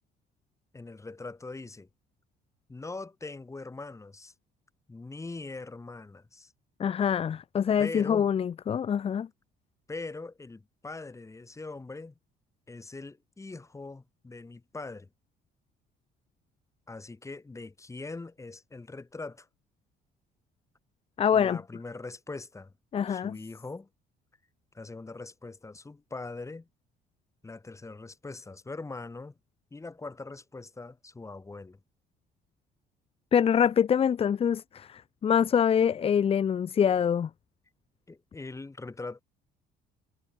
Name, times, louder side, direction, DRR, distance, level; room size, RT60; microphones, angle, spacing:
voice 1, 0.7-1.9 2.7-4.3 4.9-6.5 7.8-8.3 9.9-12.1 12.7-15.1 16.9-19.5 21.3-22.7 23.1-23.9 24.7-26.7 27.4-29.3 29.7-31.8 38.1-39.2, left 3 dB, 15° left, 7.4 m, -41 dB
voice 2, 6.8-9.3 21.2-21.6 22.9-23.4 33.3-37.3, left 8 dB, 35° left, 0.7 m, -25 dB
cardioid pair, 110°, 17 cm